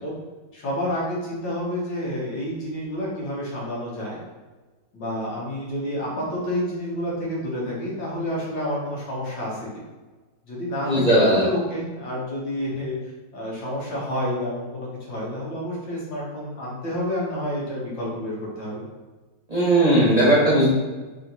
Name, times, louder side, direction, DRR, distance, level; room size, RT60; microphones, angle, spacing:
voice 1, 0.5-4.3 4.9-9.7 10.5-13.0 13.3-18.8, left 1 dB, 80° left, -5 dB, 2.0 m, -29 dB
voice 2, 10.8-11.5 19.5-20.7, right 1 dB, 25° right, -7 dB, 0.9 m, -17 dB
4.1 x 3.0 x 4.0 m, 1.3 s
omnidirectional pair, 2.0 m